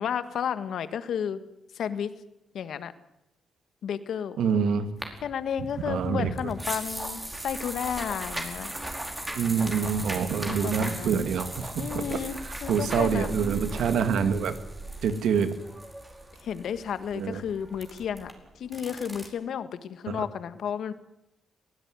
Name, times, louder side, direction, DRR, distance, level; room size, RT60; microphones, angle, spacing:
voice 1, 0.0-1.4 1.7-2.1 2.5-2.9 3.8-4.4 5.2-8.7 10.4-11.2 11.8-13.4 16.4-18.3 18.6-20.9, left 8 dB, 75° left, 12 dB, 1.6 m, -32 dB
voice 2, 4.4-4.9 5.9-6.3 9.4-12.2 12.7-14.5 15.0-15.5 17.2-17.4, right 6 dB, 80° right, 10 dB, 2.1 m, -26 dB
sound 1, 5.0-19.3, right 1 dB, 15° right, 5.0 m, -38 dB
22.5 x 16.5 x 9.7 m, 0.88 s
cardioid pair, 85°, 0 cm